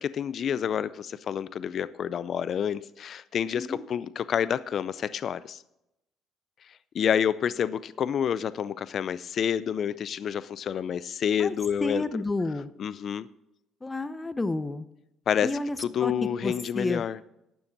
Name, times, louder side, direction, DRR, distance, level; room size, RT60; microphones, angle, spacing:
voice 1, 0.0-5.6 6.9-12.1 12.8-13.3 15.3-15.5 15.8-17.2, left 8 dB, 50° left, 17 dB, 0.4 m, -28 dB
voice 2, 3.5-3.8 11.4-11.5 11.8-12.7 13.8-14.9 15.4-16.1 16.4-17.0, left 2 dB, 15° left, 12 dB, 0.8 m, -30 dB
12.0 x 7.1 x 7.3 m, 0.86 s
cardioid pair, 100°, 0 cm